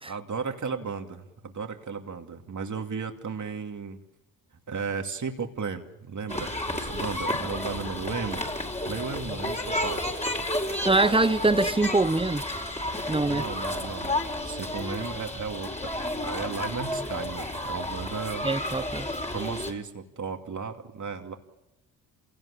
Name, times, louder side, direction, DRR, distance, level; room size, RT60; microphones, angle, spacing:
voice 1, 0.0-4.0 4.7-8.4 8.9-10.0 13.3-18.5 19.3-21.4, right 5 dB, 45° right, 2.7 m, -35 dB
sound 1, 6.3-19.7, left 1 dB, 15° left, 4.4 m, -32 dB
voice 2, 10.8-12.4 13.1-13.4 18.4-19.1, right 2 dB, 15° right, 1.0 m, -23 dB
27.0 x 17.5 x 8.5 m
supercardioid pair, 50°, 40 cm